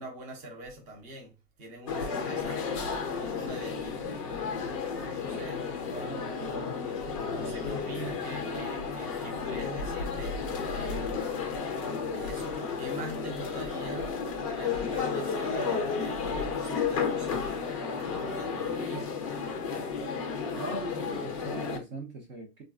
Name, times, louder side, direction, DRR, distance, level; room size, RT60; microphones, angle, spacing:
voice 1, 0.0-1.3 1.6-4.0 5.0-5.6 7.3-11.1 12.0-14.2 14.5-19.3, right 1 dB, 15° right, 0.6 m, -44 dB
sound 1, 1.9-21.8, left 5 dB, 25° left, 0.4 m, -32 dB
voice 2, 5.9-6.7 20.5-22.6, right 2 dB, 45° right, 0.9 m, -41 dB
2.9 x 2.3 x 2.4 m
hypercardioid pair, 130°, 49 cm